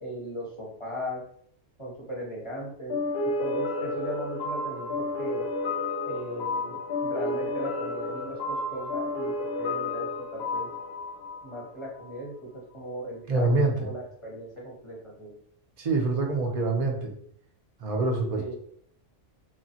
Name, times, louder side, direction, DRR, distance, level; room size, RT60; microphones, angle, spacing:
voice 1, 0.0-1.2 1.8-3.0 3.4-5.5 6.0-10.7 11.4-15.3 18.4-18.5, equal, 30° left, -4 dB, 0.7 m, -38 dB
sound 1, 2.9-12.2, left 2 dB, 65° left, 0.7 m, -31 dB
voice 2, 13.3-13.9 15.8-17.1 17.8-18.4, right 3 dB, 50° right, 2 dB, 0.4 m, -25 dB
3.1 x 2.1 x 2.7 m, 0.65 s
omnidirectional pair, 1.3 m